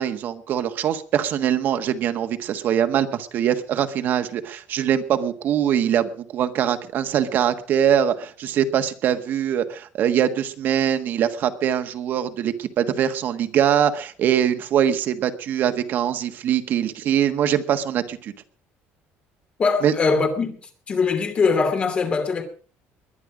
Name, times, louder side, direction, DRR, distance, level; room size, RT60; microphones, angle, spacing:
voice 1, 0.0-18.3 19.8-19.9, right 9 dB, 45° right, 1.5 m, -22 dB
voice 2, 19.6-20.6 20.9-22.4, left 4 dB, 25° left, 2.8 m, -21 dB
21.5 x 10.5 x 5.1 m
cardioid pair, 170°, 5 cm